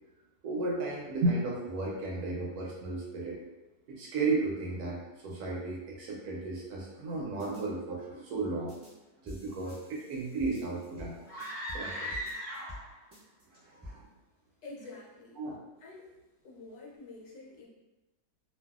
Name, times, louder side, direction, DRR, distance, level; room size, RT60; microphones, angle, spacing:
voice 1, 0.4-3.4 3.9-8.7 9.2-11.2 11.7-12.1 13.5-14.1 15.4-15.6, right 3 dB, 70° right, -3 dB, 1.0 m, -34 dB
sound 1, 7.4-7.6 8.7-8.9 9.3-11.9 12.1-12.8 13.1-13.9, left 1 dB, 10° right, 1.1 m, -48 dB
sound 2, 11.3-13.0, equal, 50° left, 1.0 m, -38 dB
voice 2, 14.6-15.4 15.8-16.1 16.4-17.7, left 3 dB, 80° left, -2 dB, 1.3 m, -47 dB
2.7 x 2.5 x 2.3 m, 1.0 s
omnidirectional pair, 1.8 m